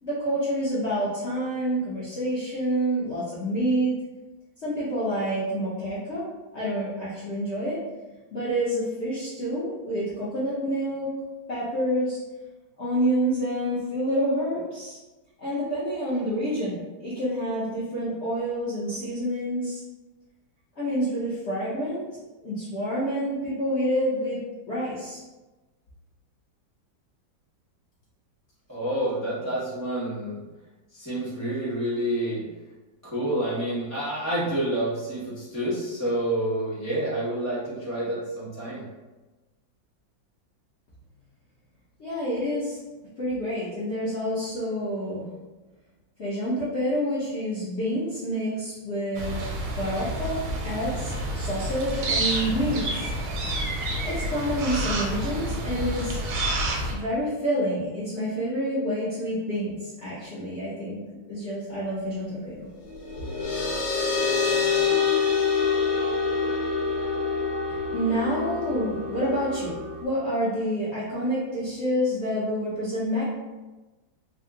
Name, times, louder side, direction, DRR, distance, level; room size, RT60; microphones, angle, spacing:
voice 1, 0.0-3.9 4.6-6.2 6.5-7.8 8.3-11.1 11.5-12.2 12.8-15.0 15.4-19.8 20.8-22.0 22.4-24.4 24.7-25.2 42.0-42.8 43.2-45.3 46.2-49.4 49.7-50.4 50.6-53.1 53.8-56.2 56.9-61.0 61.3-62.7 67.7-69.7 70.0-73.2, equal, 55° left, -10 dB, 0.7 m, -28 dB
voice 2, 28.7-30.4 30.9-32.4 33.0-38.8, right 1 dB, 20° right, -9 dB, 0.4 m, -28 dB
sound 1, 49.1-56.9, right 1 dB, 85° right, 1.5 m, -29 dB
sound 2, 62.9-70.0, left 5 dB, 80° left, 1.5 m, -26 dB
3.5 x 2.0 x 3.7 m, 1.1 s
omnidirectional pair, 2.1 m